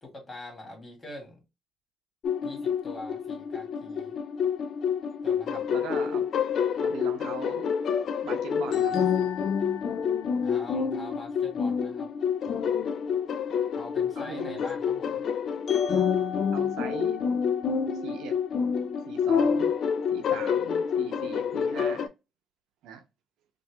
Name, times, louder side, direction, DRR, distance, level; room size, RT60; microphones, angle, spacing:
voice 1, 0.0-1.4 2.4-4.2 5.2-5.6 10.4-12.1 13.7-15.2, left 2 dB, 30° left, 2.0 m, -43 dB
sound 1, 2.2-22.1, left 7 dB, 65° left, 0.4 m, -28 dB
voice 2, 5.5-6.2 6.8-7.7 8.2-9.0 14.2-14.6 16.5-17.2 17.9-18.4 19.1-19.7 20.1-22.1 22.8-23.0, right 7 dB, 90° right, 0.6 m, -40 dB
4.3 x 2.5 x 2.3 m
cardioid pair, 90°, 0 cm